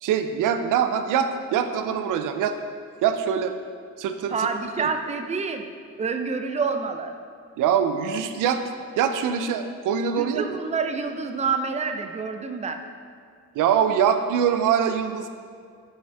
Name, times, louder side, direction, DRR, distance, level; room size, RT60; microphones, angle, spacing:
voice 1, 0.0-2.5 3.0-3.5 4.0-4.5 4.8-4.9 7.6-8.6 9.0-10.5 13.6-15.3, right 8 dB, 85° right, 8 dB, 0.5 m, -23 dB
voice 2, 4.3-5.6 6.0-7.1 10.1-12.8, right 5 dB, 25° right, 6 dB, 0.4 m, -27 dB
5.9 x 5.2 x 3.4 m, 2.2 s
cardioid pair, 70°, 30 cm